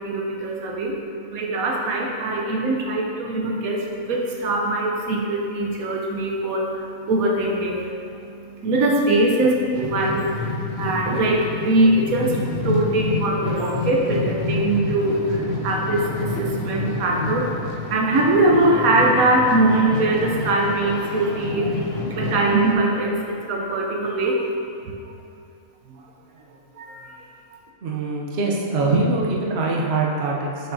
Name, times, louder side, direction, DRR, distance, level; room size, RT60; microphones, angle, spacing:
voice 1, 0.0-24.5 24.8-25.1 26.0-26.1 26.7-27.1, right 2 dB, 80° right, -1 dB, 1.1 m, -22 dB
sound 1, 9.5-22.7, left 3 dB, 60° left, 0.8 m, -29 dB
voice 2, 27.8-30.7, right 3 dB, 55° right, -2 dB, 0.9 m, -23 dB
7.3 x 5.5 x 2.6 m, 2.6 s
omnidirectional pair, 1.5 m